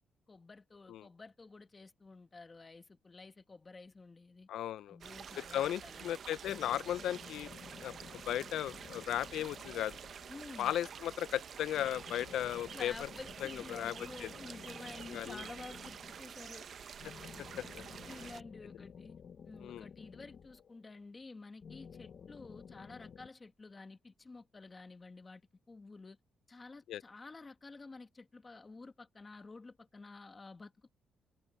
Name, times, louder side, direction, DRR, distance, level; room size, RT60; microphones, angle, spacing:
voice 1, 0.3-4.5 4.9-6.2 10.3-10.7 12.7-16.7 18.0-19.2 19.4-25.4 25.7-26.2 26.5-30.9, left 3 dB, 20° left, 1.5 m, -51 dB
voice 2, 4.5-5.0 5.4-7.5 7.8-7.9 8.3-10.0 10.6-13.1 13.4-13.9 14.2-14.3 15.1-15.4 17.7-17.8 19.6-19.9 26.9-27.0, left 11 dB, 80° left, 0.4 m, -36 dB
sound 1, 5.0-18.4, right 7 dB, 45° right, 0.6 m, -49 dB
sound 2, 6.4-10.6 11.7-16.4 17.0-21.0 21.6-23.3, left 6 dB, 40° left, 0.9 m, -53 dB
cardioid pair, 170°, 0 cm